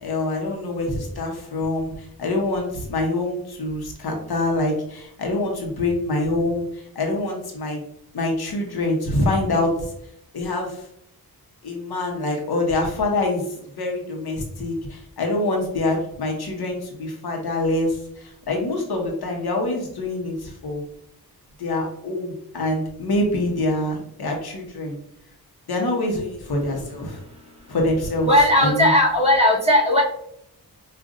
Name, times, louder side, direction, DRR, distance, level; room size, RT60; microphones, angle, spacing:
voice 1, 0.0-1.9 2.2-7.8 8.1-9.7 10.3-10.9 11.6-13.4 13.8-20.9 21.6-25.0 25.7-27.2 27.7-28.3 28.6-28.9, left 2 dB, 70° left, 1 dB, 1.0 m, -25 dB
voice 2, 28.2-30.0, left 1 dB, 15° right, -3 dB, 1.2 m, -17 dB
5.1 x 2.5 x 2.5 m, 0.72 s
wide cardioid pair, 85°, 39 cm